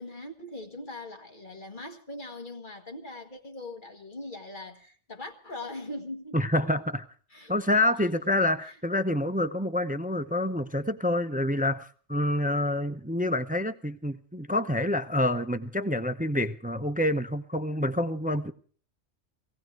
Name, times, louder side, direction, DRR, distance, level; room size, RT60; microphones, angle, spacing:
voice 1, 0.0-6.4 7.3-7.6 8.7-8.8, left 2 dB, 40° left, 2.0 m, -41 dB
voice 2, 6.3-7.0 7.5-18.5, left 1 dB, 10° right, 0.5 m, -27 dB
18.0 x 16.5 x 4.7 m
omnidirectional pair, 1.3 m